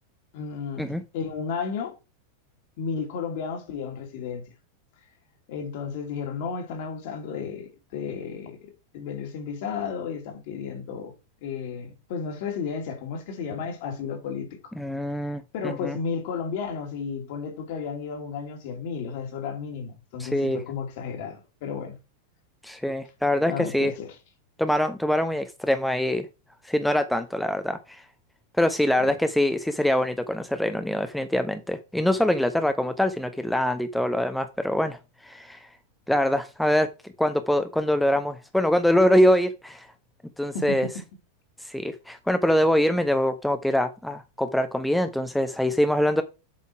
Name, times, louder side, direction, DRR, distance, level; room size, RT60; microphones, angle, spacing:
voice 1, 0.3-1.9 2.8-4.4 5.5-11.1 11.4-14.7 15.5-22.0 23.4-24.1 29.0-29.2 40.5-40.9, left 6 dB, 50° left, 2.6 m, -33 dB
voice 2, 14.8-16.0 20.2-20.6 22.6-23.9 24.6-26.3 26.6-28.0 28.6-35.7 36.1-36.9 37.2-39.9 40.4-40.9 41.6-46.2, left 1 dB, ahead, 0.7 m, -24 dB
7.5 x 5.5 x 4.7 m
figure-of-eight pair, 90°, 0 cm